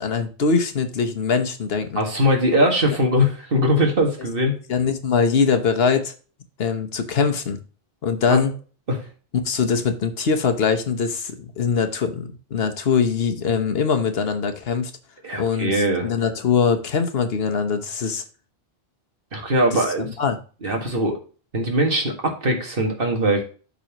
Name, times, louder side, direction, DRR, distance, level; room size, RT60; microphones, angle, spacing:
voice 1, 0.0-2.0 4.7-6.1 6.6-7.6 8.0-8.5 9.4-14.9 15.4-18.2 19.7-20.4, left 5 dB, 75° left, 7 dB, 1.3 m, -22 dB
voice 2, 2.0-4.5 8.3-8.4 8.9-9.1 15.2-16.1 19.3-20.1 20.6-21.2 21.5-23.4, equal, 60° right, 1 dB, 2.0 m, -21 dB
12.0 x 4.1 x 2.9 m, 0.37 s
omnidirectional pair, 1.0 m